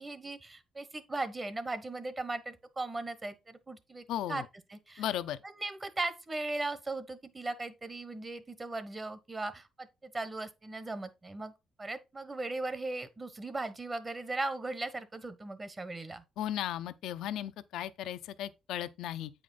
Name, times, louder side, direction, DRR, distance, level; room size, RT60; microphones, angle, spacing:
voice 1, 0.0-4.4 4.7-5.0 5.4-11.5 11.8-16.2, right 2 dB, 25° right, 1.1 m, -38 dB
voice 2, 4.1-4.4 5.0-5.4 16.4-19.3, left 11 dB, 85° left, 0.6 m, -36 dB
8.5 x 5.0 x 3.9 m
cardioid pair, 90°, 0 cm